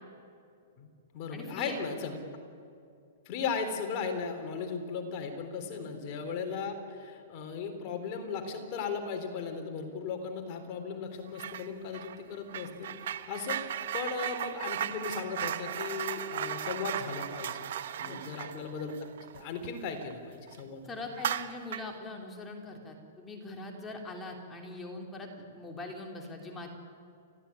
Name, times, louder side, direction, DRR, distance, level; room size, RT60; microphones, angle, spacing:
voice 1, 0.8-2.2 3.3-13.6 13.9-17.7 18.0-18.9 19.3-20.9, left 5 dB, 40° left, 5 dB, 3.6 m, -37 dB
voice 2, 1.3-1.8 5.7-5.9 18.0-18.3 20.9-26.7, left 2 dB, 15° left, 1 dB, 3.2 m, -42 dB
sound 1, 11.3-11.7 11.9-20.1 20.5-20.6 21.1-22.0, right 10 dB, 65° right, 1.2 m, -36 dB
29.5 x 14.0 x 9.8 m, 2.4 s
hypercardioid pair, 145°, 0 cm